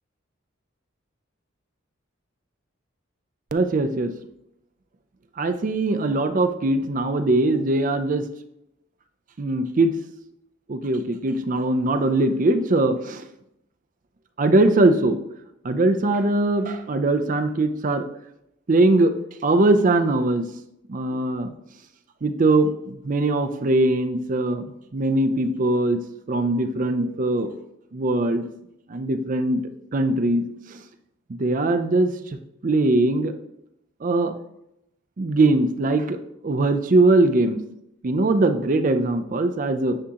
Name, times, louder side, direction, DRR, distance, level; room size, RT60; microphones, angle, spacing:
voice 1, 3.5-4.1 5.4-8.3 9.4-9.9 10.7-13.3 14.4-15.2 15.6-18.0 18.7-19.1 19.4-20.5 20.9-21.5 22.2-26.0 26.3-27.5 27.9-28.5 28.9-29.6 29.9-30.4 30.7-30.8 31.3-32.1 32.6-33.3 34.0-34.4 35.2-37.6 38.0-40.0, right 2 dB, 40° right, 8 dB, 0.4 m, -21 dB
10.0 x 3.6 x 2.9 m, 0.80 s
head